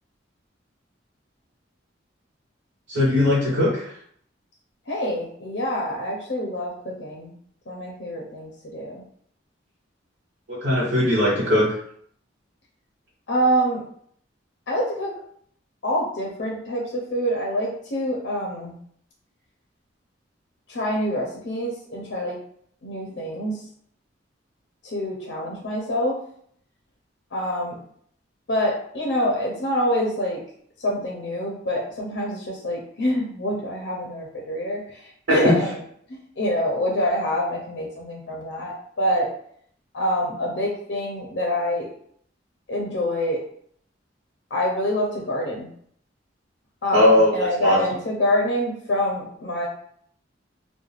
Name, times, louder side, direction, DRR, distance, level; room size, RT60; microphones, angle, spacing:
voice 1, 2.9-3.9 10.5-11.7 35.3-35.5 46.9-47.8, left 1 dB, 70° right, -7 dB, 0.9 m, -19 dB
voice 2, 4.9-7.3 7.7-9.0 13.3-13.8 14.7-15.1 15.8-18.8 20.7-22.4 22.8-23.6 24.8-26.2 27.3-27.7 28.5-30.4 30.8-35.8 36.1-39.3 39.9-41.9 42.7-43.4 44.5-45.7 46.8-49.7, equal, 65° left, -2 dB, 0.5 m, -26 dB
2.4 x 2.1 x 3.1 m, 0.63 s
head